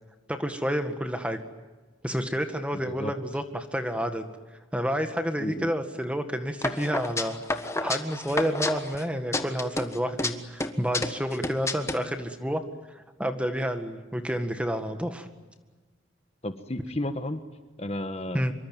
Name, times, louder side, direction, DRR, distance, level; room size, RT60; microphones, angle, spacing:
voice 1, 0.3-1.4 2.0-4.3 4.7-7.3 7.8-12.6 12.9-15.3 18.3-18.5, equal, 5° right, 7 dB, 1.8 m, -29 dB
sound 1, 6.6-9.0 9.3-10.3 10.6-12.0, left 2 dB, 15° left, 1.4 m, -29 dB
voice 2, 16.4-17.4 17.8-18.4, left 1 dB, 30° left, 8 dB, 1.4 m, -32 dB
26.0 x 24.0 x 9.1 m, 1.3 s
head